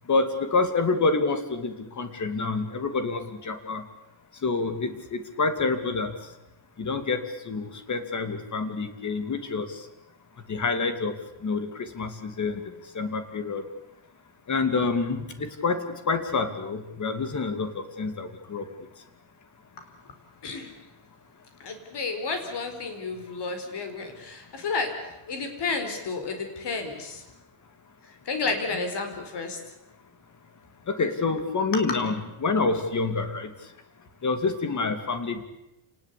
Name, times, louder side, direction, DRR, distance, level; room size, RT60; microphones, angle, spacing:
voice 1, 0.1-3.8 4.4-6.1 6.8-9.8 10.5-12.6 12.9-13.6 14.5-18.6 30.9-33.5 34.2-35.4, left 4 dB, 35° left, 9 dB, 2.5 m, -27 dB
voice 2, 21.6-24.9 25.3-27.2 28.2-29.6, left 4 dB, 55° left, 6 dB, 4.9 m, -31 dB
28.0 x 19.5 x 8.5 m, 0.90 s
cardioid pair, 160°, 48 cm